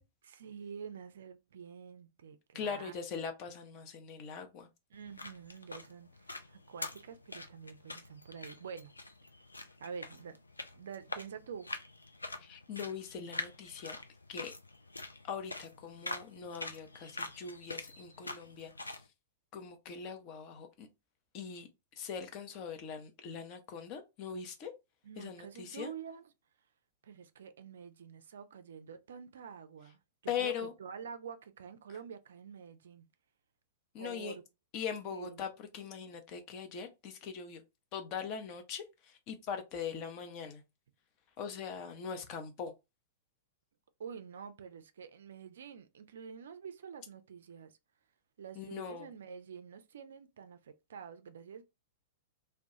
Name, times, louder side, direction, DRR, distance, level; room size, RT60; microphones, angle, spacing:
voice 1, 0.2-3.0 4.9-8.9 9.8-10.4 10.7-11.7 25.0-26.3 27.0-33.1 34.0-34.4 35.1-35.5 44.0-47.7 48.4-51.6, right 7 dB, 60° right, 0.3 m, -47 dB
voice 2, 2.5-4.7 12.4-14.0 14.3-14.5 15.2-19.0 19.5-20.9 21.3-21.7 22.0-24.7 25.2-25.9 30.3-30.7 33.9-34.3 34.7-37.6 37.9-38.8 39.3-40.6 41.4-42.7 48.6-49.1, left 7 dB, 35° left, 0.6 m, -41 dB
sound 1, 4.9-19.1, left 2 dB, 80° left, 0.3 m, -45 dB
2.2 x 2.2 x 2.7 m
figure-of-eight pair, 100°, 0 cm